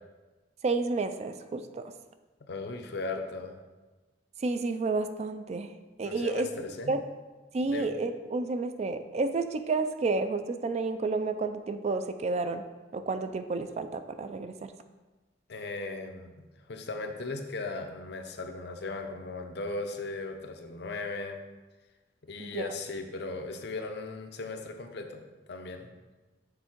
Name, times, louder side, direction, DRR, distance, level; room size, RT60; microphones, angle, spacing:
voice 1, 0.6-1.9 4.4-5.7 6.0-6.5 6.9-7.0 7.5-12.6 12.9-14.7 22.4-22.6, right 3 dB, 40° right, 9 dB, 0.3 m, -30 dB
voice 2, 2.4-3.6 6.0-7.0 7.7-7.9 15.5-21.4 22.3-25.2 25.5-25.9, left 3 dB, 65° left, 5 dB, 0.6 m, -37 dB
6.7 x 3.5 x 4.4 m, 1.2 s
head